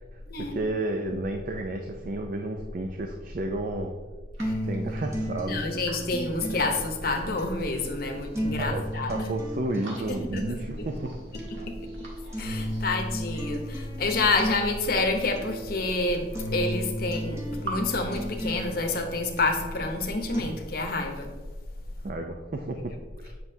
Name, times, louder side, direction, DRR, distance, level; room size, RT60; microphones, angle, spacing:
voice 1, 0.1-3.9 4.6-5.6 6.5-6.6 8.6-11.1 22.0-22.9 23.2-23.3, right 2 dB, 45° right, 3 dB, 0.4 m, -32 dB
sound 1, 4.3-7.3 7.7-9.2 9.5-10.4 10.7-13.3 13.9-15.2 15.9-16.0 16.2-17.8 18.0-19.0, right 2 dB, 80° right, 1.6 m, -46 dB
sound 2, 4.4-20.4, equal, 15° right, 0.9 m, -35 dB
voice 2, 5.5-9.1 10.1-10.6 12.4-16.3 16.5-21.3, left 3 dB, 50° left, 3 dB, 0.8 m, -28 dB
7.5 x 5.8 x 2.7 m, 1.3 s
head